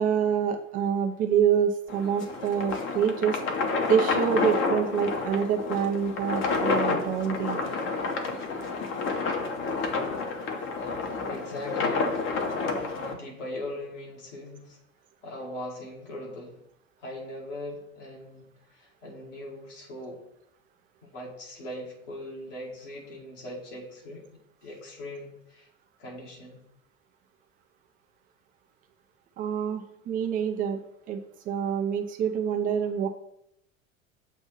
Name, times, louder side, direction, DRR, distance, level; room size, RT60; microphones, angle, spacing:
voice 1, 0.0-3.4 3.9-7.6 29.4-30.8 31.1-31.2 31.5-33.1, right 8 dB, 20° right, 5 dB, 0.4 m, -26 dB
sound 1, 1.9-13.1, left 4 dB, 30° left, 0.8 m, -29 dB
voice 2, 11.3-12.2 13.1-14.8 15.2-16.6 17.0-20.2 21.0-24.2 24.6-25.7 26.0-26.6, left 1 dB, 65° left, -2 dB, 2.0 m, -40 dB
7.2 x 2.6 x 5.6 m, 0.78 s
figure-of-eight pair, 80°, 40 cm